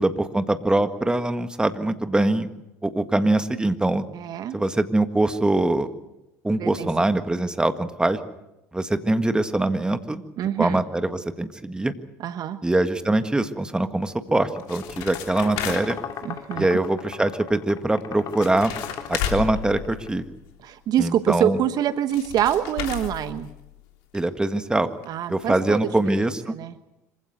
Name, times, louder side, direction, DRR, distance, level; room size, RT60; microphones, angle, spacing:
voice 1, 0.0-2.5 2.8-4.0 4.5-5.9 6.4-8.2 8.7-10.2 10.6-11.9 12.6-16.0 16.5-18.7 19.1-20.2 21.0-21.6 24.1-24.9 25.3-26.5, right 2 dB, 10° right, 9 dB, 1.7 m, -23 dB
voice 2, 4.1-4.6 6.6-6.9 10.4-10.8 12.2-12.6 16.2-16.7 20.6-23.5 25.1-25.8 26.0-26.1 26.5-26.7, right 10 dB, 50° right, 12 dB, 1.2 m, -25 dB
sound 1, 14.4-16.1 18.0-18.1 18.3-20.5 21.8-21.9 22.1-23.8 24.1-24.2 24.4-24.5 25.0-25.1 25.4-25.5, left 9 dB, 65° left, 3.2 m, -33 dB
sound 2, 14.4-20.1, left 8 dB, 45° left, 2.4 m, -37 dB
26.0 x 16.0 x 8.1 m, 0.94 s
hypercardioid pair, 70°, 9 cm